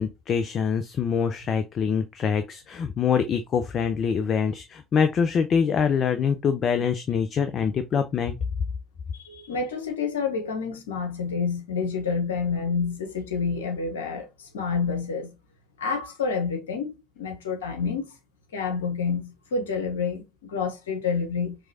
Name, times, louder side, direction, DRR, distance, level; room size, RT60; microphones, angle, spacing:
voice 1, 0.0-8.4, left 6 dB, 50° left, 0.6 m, -24 dB
voice 2, 9.1-15.3 15.8-16.9 17.2-18.1 18.5-21.6, left 5 dB, 90° left, 1.1 m, -28 dB
4.7 x 3.1 x 2.7 m
hypercardioid pair, 65°, 0 cm